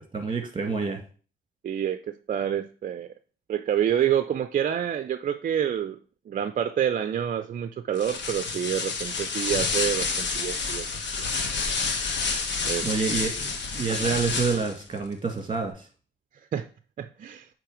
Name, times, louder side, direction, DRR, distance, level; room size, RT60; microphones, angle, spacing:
voice 1, 0.1-1.0 12.8-15.9, right 5 dB, 25° right, 4 dB, 2.0 m, -28 dB
voice 2, 1.6-3.1 3.5-6.0 6.3-10.9 11.2-11.3 12.6-12.9 13.9-14.1 16.5-16.7 17.0-17.5, right 9 dB, 40° right, 10 dB, 0.4 m, -28 dB
sound 1, 7.9-14.8, left 4 dB, 65° left, 1.4 m, -29 dB
8.2 x 3.3 x 5.0 m, 0.39 s
cardioid pair, 90°, 20 cm